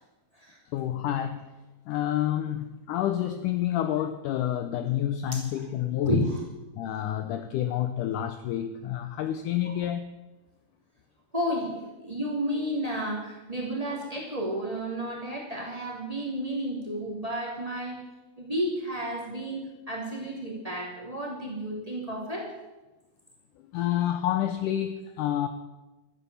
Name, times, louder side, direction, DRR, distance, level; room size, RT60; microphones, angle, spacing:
voice 1, 0.7-1.5 1.9-6.3 6.8-10.0 23.7-25.5, left 11 dB, 80° left, 9 dB, 1.9 m, -28 dB
voice 2, 6.0-6.4 9.6-9.8 11.3-18.0 18.4-22.5, right 1 dB, 10° right, -2 dB, 2.5 m, -32 dB
13.5 x 9.7 x 7.0 m, 1.1 s
omnidirectional pair, 4.3 m